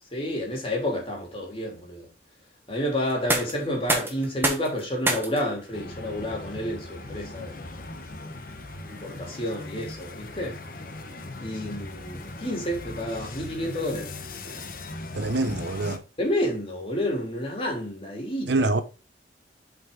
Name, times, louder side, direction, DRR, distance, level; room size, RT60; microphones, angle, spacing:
voice 1, 0.1-2.1 2.7-7.6 8.9-10.6 11.4-14.1 14.4-14.7 16.2-18.5, left 1 dB, 30° left, 3.2 m, -30 dB
sound 1, 3.1-14.8, right 2 dB, 10° right, 1.4 m, -35 dB
sound 2, 5.7-16.0, left 2 dB, 50° left, 1.1 m, -39 dB
voice 2, 15.1-16.0 18.5-18.8, right 2 dB, 65° right, 0.8 m, -25 dB
7.8 x 5.5 x 3.8 m
head